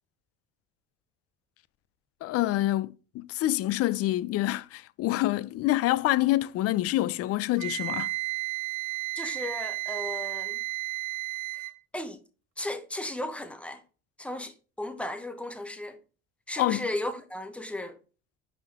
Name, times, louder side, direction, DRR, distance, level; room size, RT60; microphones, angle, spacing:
voice 1, 2.2-8.1 16.6-16.9, left 16 dB, 55° left, 0.4 m, -27 dB
Wind instrument woodwind instrument, 7.6-11.8, right 18 dB, 85° right, 1.0 m, -33 dB
voice 2, 9.1-10.6 11.9-12.2 12.6-13.8 14.2-16.0 16.5-18.0, left 1 dB, 5° left, 0.7 m, -35 dB
10.5 x 3.7 x 3.5 m
cardioid pair, 160°, 29 cm